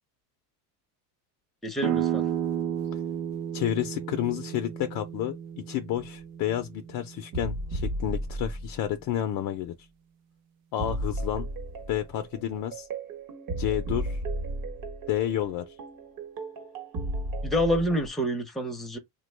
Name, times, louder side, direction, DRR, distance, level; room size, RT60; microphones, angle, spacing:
voice 1, 1.6-2.2 17.4-19.0, equal, ahead, 0.6 m, -27 dB
sound 1, 1.8-7.4, right 10 dB, 65° right, 0.7 m, -32 dB
voice 2, 3.5-9.7 10.7-11.5 11.9-12.9 13.6-14.2 15.1-15.8, left 11 dB, 45° left, 0.5 m, -30 dB
sound 2, 7.3-9.1 10.8-18.1, right 1 dB, 45° right, 1.1 m, -34 dB
3.2 x 2.2 x 3.2 m
supercardioid pair, 115°, 47 cm